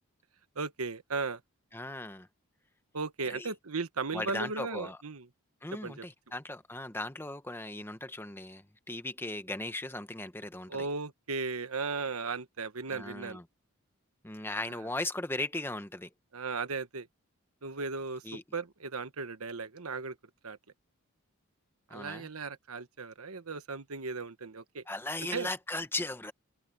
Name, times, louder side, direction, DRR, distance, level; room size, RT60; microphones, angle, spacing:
voice 1, 0.5-1.4 2.9-5.3 5.8-6.1 10.7-13.4 14.7-14.8 16.3-17.1 17.6-20.2 20.4-20.6 21.9-24.8 25.3-25.5, right 4 dB, 80° right, 1.3 m, -36 dB
voice 2, 1.7-2.3 3.3-3.5 4.1-5.0 5.6-10.9 12.9-13.4 14.2-16.1 18.2-18.4 21.9-22.3 24.9-26.3, left 2 dB, 10° left, 1.0 m, -37 dB
head